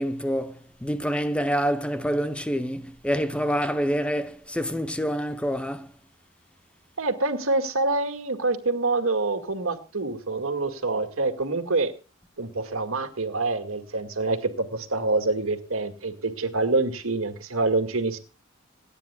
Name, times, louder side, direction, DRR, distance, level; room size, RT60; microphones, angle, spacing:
voice 1, 0.0-5.9, equal, 5° left, 0.8 m, -27 dB
voice 2, 7.0-11.9 12.4-18.2, right 3 dB, 85° right, 2.1 m, -26 dB
27.0 x 9.8 x 2.3 m
head